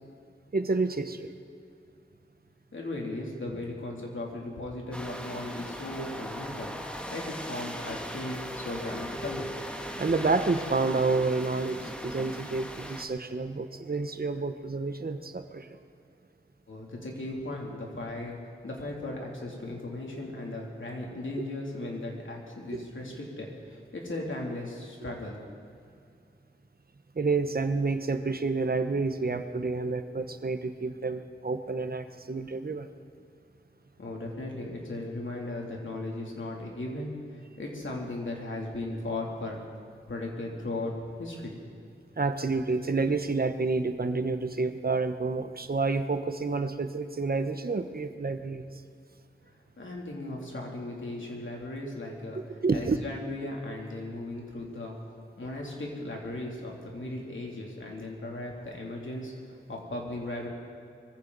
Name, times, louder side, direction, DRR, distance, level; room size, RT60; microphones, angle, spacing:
voice 1, 0.5-1.3 10.0-15.7 22.7-22.8 27.2-32.9 42.2-48.6 52.6-53.0, right 3 dB, 50° right, 9 dB, 1.0 m, -29 dB
voice 2, 2.7-9.5 16.7-18.4 18.6-25.4 34.0-39.6 40.1-41.5 49.8-52.4 52.7-55.0 55.4-60.5, left 2 dB, 85° left, -1 dB, 3.0 m, -37 dB
sound 1, 4.9-13.1, equal, 5° left, 1.5 m, -39 dB
22.5 x 15.5 x 4.1 m, 2.4 s
wide cardioid pair, 70°, 20 cm